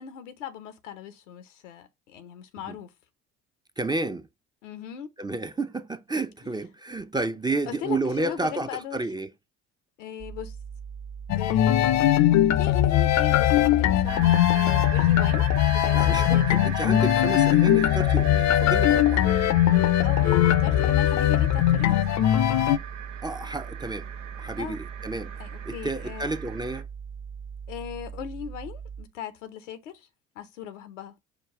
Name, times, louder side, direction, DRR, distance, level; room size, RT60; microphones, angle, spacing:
voice 1, 0.0-2.9 4.6-5.1 6.4-6.5 7.7-9.0 10.0-10.5 11.3-12.2 12.6-16.6 20.0-22.0 24.6-24.8 25.4-26.4 27.7-30.1 30.4-31.2, left 9 dB, 85° left, 0.8 m, -38 dB
voice 2, 3.8-4.3 5.2-9.3 15.9-19.3 23.2-24.1 24.4-25.3 25.7-26.9, right 2 dB, 10° right, 0.5 m, -31 dB
sound 1, 10.2-29.1, right 6 dB, 60° right, 1.4 m, -40 dB
sound 2, 11.3-22.8, left 12 dB, 50° left, 0.6 m, -20 dB
sound 3, 14.1-26.8, right 9 dB, 85° right, 0.6 m, -40 dB
5.1 x 2.3 x 4.5 m
hypercardioid pair, 55°, 36 cm